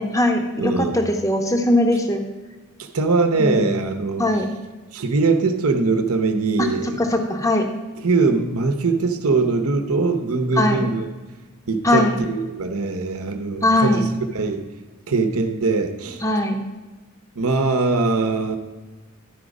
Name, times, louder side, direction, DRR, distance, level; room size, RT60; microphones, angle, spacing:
voice 1, 0.0-2.2 3.4-3.8 4.2-4.5 6.6-6.7 7.0-7.7 10.6-10.9 11.8-12.1 13.6-14.1 16.2-16.6, left 1 dB, 15° left, 4 dB, 0.8 m, -20 dB
voice 2, 0.6-1.0 2.8-4.3 4.9-6.9 8.0-11.1 11.7-14.6 15.1-16.2 17.4-18.6, right 3 dB, 75° right, 7 dB, 0.8 m, -21 dB
12.0 x 4.9 x 5.2 m, 1.2 s
head